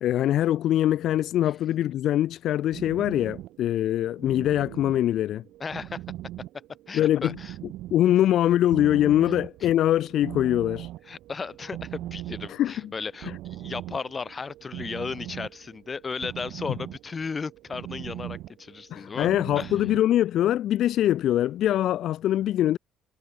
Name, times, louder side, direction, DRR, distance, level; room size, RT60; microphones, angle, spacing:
voice 1, 0.0-5.4 6.9-7.4 7.9-10.9 12.5-12.9 13.3-13.4 18.9-22.8, left 12 dB, 55° left, 0.6 m, -23 dB
sound 1, 2.7-20.2, right 15 dB, 65° right, 3.5 m, -41 dB
voice 2, 5.6-6.0 6.9-7.5 9.6-9.7 11.1-19.3 19.6-19.7, left 5 dB, 20° left, 1.2 m, -35 dB
cardioid pair, 155°, 0 cm